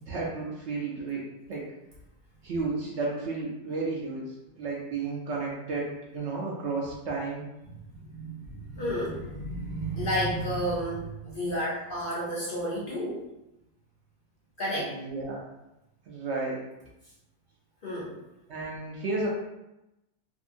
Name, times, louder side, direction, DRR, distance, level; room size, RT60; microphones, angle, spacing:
voice 1, 0.0-1.2 1.5-1.7 2.4-7.5 14.7-15.4 16.1-16.6 18.5-19.3, right 3 dB, 65° right, -4 dB, 0.7 m, -32 dB
voice 2, 7.7-13.2 14.6-15.0 17.8-18.2, equal, 75° left, -7 dB, 0.4 m, -31 dB
2.7 x 2.6 x 2.5 m, 0.92 s
omnidirectional pair, 1.7 m